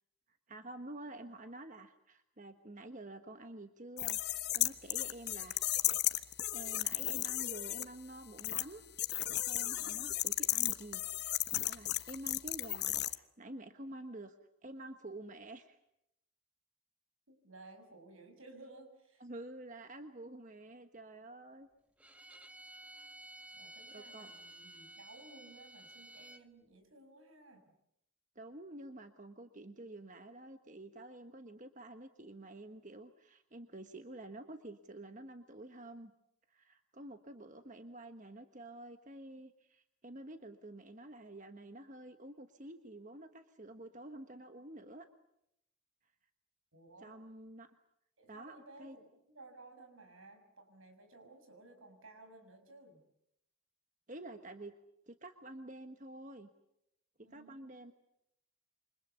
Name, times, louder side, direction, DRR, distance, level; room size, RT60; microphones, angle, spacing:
voice 1, 0.5-5.7 6.2-8.8 9.2-14.4 14.6-15.8 19.2-21.7 23.9-24.3 28.3-36.1 36.5-45.1 47.0-47.7 48.3-49.0 54.1-54.7 55.1-56.5 57.2-57.9, right 1 dB, 40° right, 7 dB, 1.3 m, -49 dB
sound 1, 4.0-7.8 8.4-8.6 9.0-13.1, left 15 dB, 50° left, 1.1 m, -34 dB
voice 2, 17.3-19.2 23.5-27.7 46.7-47.1 48.2-53.0 57.2-57.8, right 2 dB, 80° right, 6 dB, 6.4 m, -57 dB
Bowed string instrument, 22.0-26.4, right 1 dB, 5° right, 1.2 m, -53 dB
28.5 x 25.5 x 7.1 m, 0.79 s
head